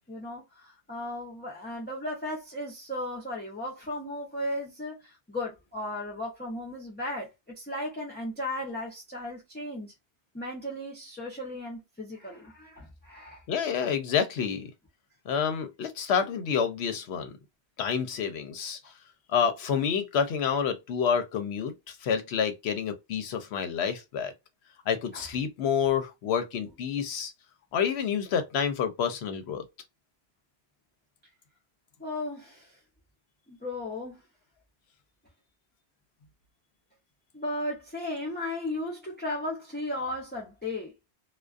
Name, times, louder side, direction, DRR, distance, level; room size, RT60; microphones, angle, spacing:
voice 1, 0.1-5.0 5.3-9.9 10.3-13.4 25.1-25.2 32.0-32.7 33.5-34.2 37.3-40.9, left 1 dB, 10° left, 0.5 m, -35 dB
voice 2, 13.5-14.7 15.3-17.3 17.8-18.8 19.3-24.3 24.9-27.3 27.7-29.6, left 7 dB, 70° left, 0.8 m, -28 dB
2.3 x 2.2 x 2.4 m
omnidirectional pair, 1.2 m